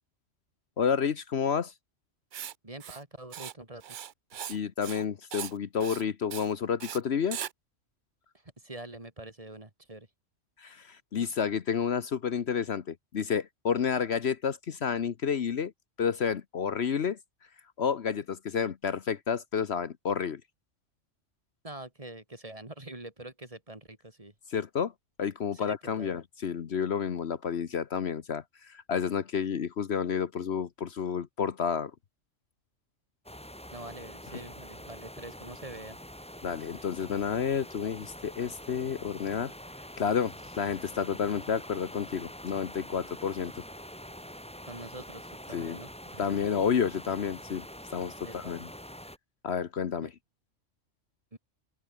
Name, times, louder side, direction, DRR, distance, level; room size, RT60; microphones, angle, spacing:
voice 1, 0.8-1.7 4.5-7.4 10.6-15.7 16.0-17.2 17.8-20.4 24.5-24.9 25.2-31.9 36.4-39.5 40.0-43.6 45.5-45.8 46.2-47.6 47.9-48.7 49.4-50.1, left 7 dB, 60° left, 1.2 m, -30 dB
Writing, 2.3-2.5 2.8-3.0 3.3-3.5 3.8-4.6 4.8-5.0 5.3-5.5 5.8-6.0 6.3-6.5 6.8-7.0 7.3-7.5, right 9 dB, 55° right, 0.6 m, -39 dB
voice 2, 2.6-3.8 8.3-10.1 21.6-24.3 25.5-26.1 33.7-36.0 44.7-46.4 48.2-48.5 50.0-50.1 51.3-51.4, right 2 dB, 30° right, 2.6 m, -45 dB
sound 1, 33.3-49.2, equal, 5° left, 2.2 m, -45 dB
open air
omnidirectional pair, 1.3 m